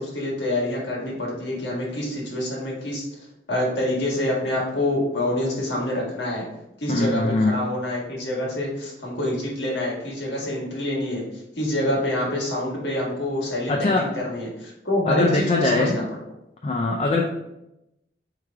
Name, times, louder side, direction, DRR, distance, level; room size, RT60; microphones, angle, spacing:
voice 1, 0.0-3.0 3.5-6.5 6.8-11.2 11.6-16.0, left 1 dB, 75° left, -3 dB, 1.5 m, -26 dB
voice 2, 6.9-7.6 13.7-14.1 15.1-16.1 16.6-17.2, left 2 dB, 35° left, 1 dB, 0.4 m, -22 dB
4.7 x 3.2 x 3.4 m, 0.87 s
head